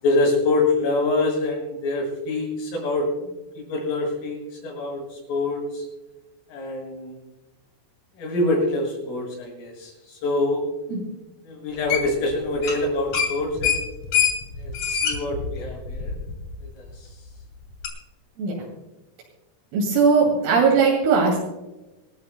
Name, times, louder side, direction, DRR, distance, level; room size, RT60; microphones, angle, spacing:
voice 1, 0.0-3.1 3.6-4.4 4.6-5.8 6.5-7.2 8.2-9.9 10.2-10.6 11.5-13.9 14.6-16.2 16.8-16.9, left 2 dB, 75° left, -2 dB, 8.8 m, -25 dB
sound 1, 11.9-12.3 12.6-12.8 13.1-16.5 16.9-17.0 17.8-17.9, left 7 dB, 40° left, 3.1 m, -24 dB
voice 2, 19.7-21.4, right 5 dB, 85° right, -2 dB, 5.1 m, -19 dB
26.5 x 13.0 x 2.2 m, 1.0 s
omnidirectional pair, 5.9 m